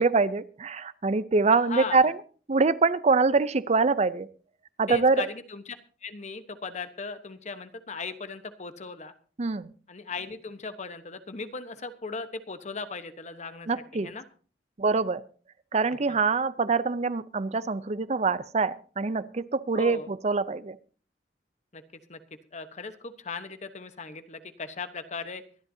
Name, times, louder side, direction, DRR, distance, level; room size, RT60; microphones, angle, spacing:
voice 1, 0.0-2.2 2.5-4.3 4.8-5.3 9.4-9.7 13.7-14.1 14.8-15.2 15.7-20.8, right 4 dB, 40° right, 16 dB, 0.6 m, -24 dB
voice 2, 1.5-2.1 4.9-5.8 6.0-9.1 9.9-14.2 19.7-20.1 21.7-21.8 22.1-22.2 22.5-25.4, left 4 dB, 40° left, 10 dB, 1.1 m, -38 dB
24.0 x 11.0 x 2.8 m, 0.40 s
head